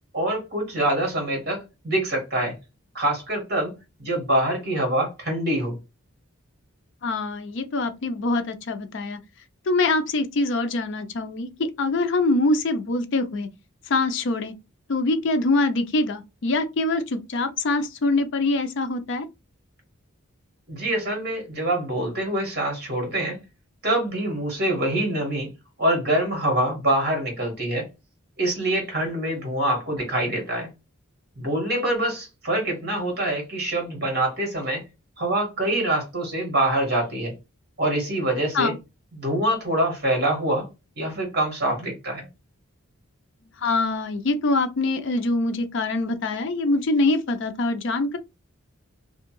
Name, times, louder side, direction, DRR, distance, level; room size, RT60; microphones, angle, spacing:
voice 1, 0.1-2.5 2.9-3.7 4.0-5.8 20.7-23.4 23.8-25.5 25.8-27.9 28.4-30.7 31.4-34.8 35.2-37.3 37.8-38.7 39.1-40.7 41.0-42.3, right 1 dB, 45° right, 1.4 m, -25 dB
voice 2, 7.0-9.2 9.7-13.5 13.9-14.5 14.9-19.3 38.5-38.8 43.6-48.2, left 2 dB, 55° left, 0.4 m, -24 dB
2.6 x 2.3 x 2.9 m
head